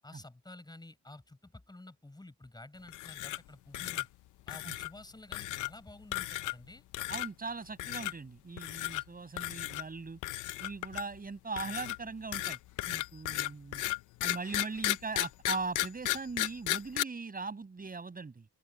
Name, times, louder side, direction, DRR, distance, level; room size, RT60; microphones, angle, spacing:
voice 1, 0.0-4.1 4.5-6.8, left 2 dB, 15° left, 7.0 m, -51 dB
sound 1, 2.9-3.5 3.7-4.1 4.5-4.9 5.3-5.7 6.1-6.7 6.9-7.3 7.8-8.1 8.6-9.0 9.4-9.8 10.2-11.2 11.6-17.0, left 17 dB, 85° left, 0.7 m, -34 dB
voice 2, 7.1-10.2 10.6-12.6 12.9-13.8 14.2-18.5, right 4 dB, 30° right, 6.5 m, -40 dB
open air
cardioid pair, 90°, 30 cm